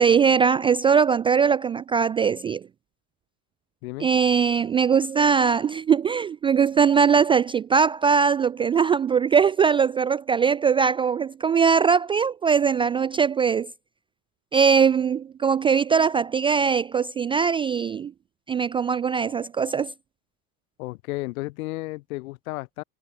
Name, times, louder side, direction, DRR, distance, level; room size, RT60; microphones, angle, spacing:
voice 1, 0.0-2.6 4.0-13.7 14.5-18.1 18.5-19.9, right 6 dB, 15° right, 0.3 m, -21 dB
voice 2, 20.8-22.8, left 21 dB, 70° left, 2.3 m, -33 dB
supercardioid pair, 120°, 44 cm